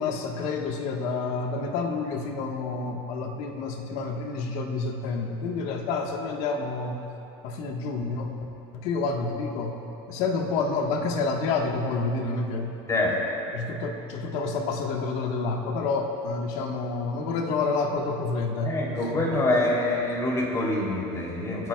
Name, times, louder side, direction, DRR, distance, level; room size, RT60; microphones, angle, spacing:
voice 1, 0.0-7.0 7.4-8.3 8.7-9.8 10.1-12.7 13.5-18.8 19.1-19.5, left 4 dB, 70° left, 2 dB, 1.6 m, -29 dB
voice 2, 18.6-21.7, left 2 dB, 25° left, -4 dB, 3.4 m, -25 dB
28.0 x 11.0 x 2.4 m, 2.9 s
cardioid pair, 135°, 12 cm